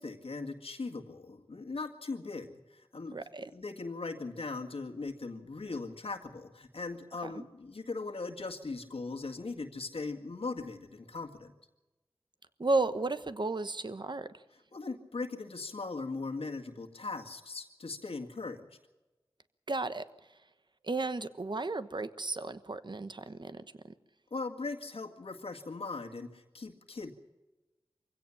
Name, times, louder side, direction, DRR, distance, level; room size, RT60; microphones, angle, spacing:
voice 1, 0.0-3.2 3.5-11.5 14.7-18.8 24.3-27.1, left 3 dB, 90° left, 5 dB, 2.0 m, -39 dB
voice 2, 3.1-3.5 7.2-7.5 12.6-14.3 19.7-20.1 20.8-23.6, right 3 dB, 55° right, 12 dB, 1.1 m, -33 dB
24.5 x 16.5 x 7.2 m, 1.1 s
wide cardioid pair, 50°, 10 cm